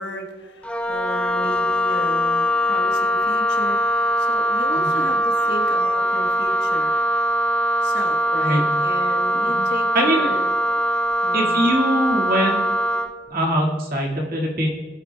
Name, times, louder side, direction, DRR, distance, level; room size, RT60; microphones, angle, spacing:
voice 1, 0.0-7.0 7.8-10.5 11.2-11.7, left 1 dB, 70° left, 2 dB, 1.4 m, -34 dB
Wind instrument woodwind instrument, 0.6-13.1, equal, 5° left, 0.5 m, -21 dB
voice 2, 9.9-10.3 11.3-12.6 13.3-14.7, equal, 55° right, -1 dB, 2.0 m, -22 dB
19.0 x 8.8 x 2.3 m, 1.4 s
head